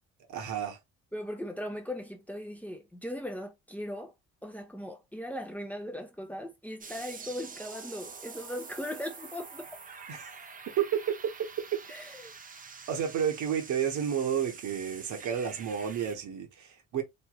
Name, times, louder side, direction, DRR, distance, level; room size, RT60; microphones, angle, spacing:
voice 1, 0.3-0.8 10.1-10.3 10.8-11.0 12.9-17.0, right 8 dB, 75° right, 1.1 m, -31 dB
voice 2, 1.1-4.1 4.4-9.7 11.9-12.3, equal, 5° left, 0.8 m, -38 dB
sound 1, 6.8-16.2, right 5 dB, 30° right, 0.6 m, -46 dB
3.1 x 2.7 x 2.3 m
cardioid pair, 90°, 30 cm